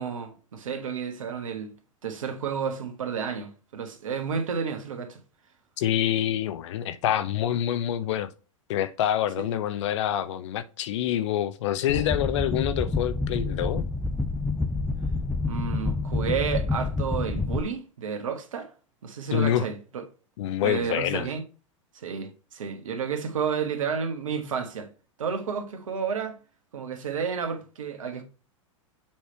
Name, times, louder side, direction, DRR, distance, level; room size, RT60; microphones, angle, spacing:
voice 1, 0.0-1.7 2.0-5.2 9.4-9.5 15.4-18.7 19.0-20.0 20.6-21.4 21.9-24.9 25.2-26.4 26.7-28.2, right 6 dB, 80° right, 1.4 m, -31 dB
voice 2, 5.8-8.3 8.7-13.9 19.3-19.6 20.4-21.3, left 11 dB, 60° left, 0.7 m, -26 dB
sound 1, 11.9-17.6, left 3 dB, 5° left, 0.4 m, -28 dB
7.3 x 3.3 x 4.3 m
hypercardioid pair, 105°, 17 cm